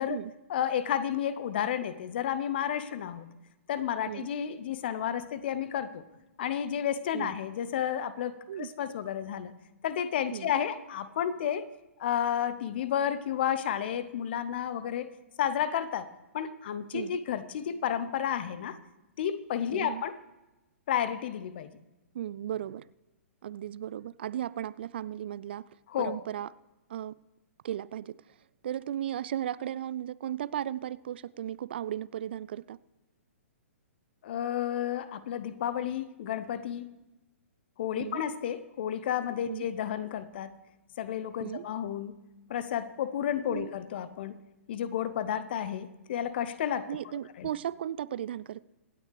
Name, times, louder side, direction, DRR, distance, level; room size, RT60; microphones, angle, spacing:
voice 1, 0.5-3.3 3.7-6.0 6.4-8.3 8.6-9.6 9.8-11.7 12.0-15.1 15.4-16.1 16.3-18.8 19.2-20.2 20.9-21.7 25.9-26.2 34.2-37.0 37.8-40.5 41.0-42.2 42.5-44.3 44.7-46.9 47.4-47.5, left 9 dB, 45° left, 14 dB, 0.8 m, -31 dB
voice 2, 19.7-20.0 22.1-22.9 23.4-25.6 26.0-26.5 26.9-27.2 27.6-28.4 28.6-32.8 38.0-38.2 39.5-39.6 41.4-41.7 43.5-43.7 46.9-48.6, right 11 dB, 45° right, 20 dB, 0.3 m, -36 dB
25.5 x 9.4 x 3.3 m, 1.0 s
figure-of-eight pair, 120°, 8 cm